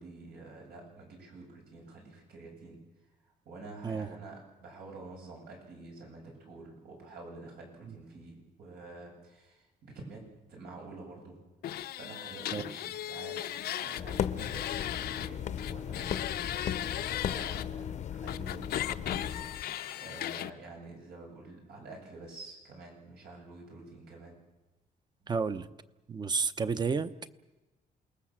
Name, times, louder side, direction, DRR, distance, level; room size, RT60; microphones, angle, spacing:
voice 1, 0.0-2.8 3.4-11.4 11.9-24.4, right 3 dB, 85° right, 0 dB, 7.6 m, -48 dB
sound 1, 11.6-15.3 15.6-17.6 18.3-20.5, left 12 dB, 80° left, 0.7 m, -37 dB
sound 2, 13.9-19.6, left 9 dB, 50° left, 0.7 m, -36 dB
voice 2, 25.3-25.7 26.1-27.3, right 5 dB, 25° right, 12 dB, 0.8 m, -31 dB
28.0 x 19.5 x 7.4 m, 1.1 s
cardioid pair, 155°, 16 cm